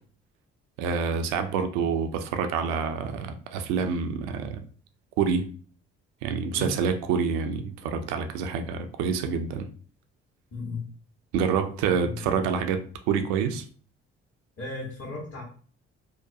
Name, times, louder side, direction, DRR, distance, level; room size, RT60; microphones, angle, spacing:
voice 1, 0.8-4.6 5.2-5.5 6.2-9.7 11.3-13.6, right 6 dB, 80° right, 0.5 m, -27 dB
voice 2, 12.0-12.4 14.6-15.4, left 3 dB, 50° left, 1.2 m, -35 dB
2.8 x 2.2 x 2.6 m
hypercardioid pair, 50°, 31 cm